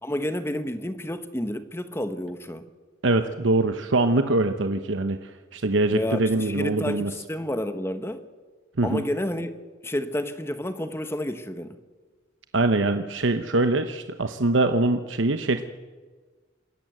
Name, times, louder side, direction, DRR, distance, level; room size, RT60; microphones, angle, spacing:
voice 1, 0.0-2.6 5.9-8.2 8.8-9.5 9.8-11.8, left 1 dB, 15° left, 1.2 m, -30 dB
voice 2, 3.0-7.1 8.8-9.0 12.5-15.7, right 2 dB, 85° right, 1.0 m, -23 dB
27.0 x 14.0 x 8.0 m
head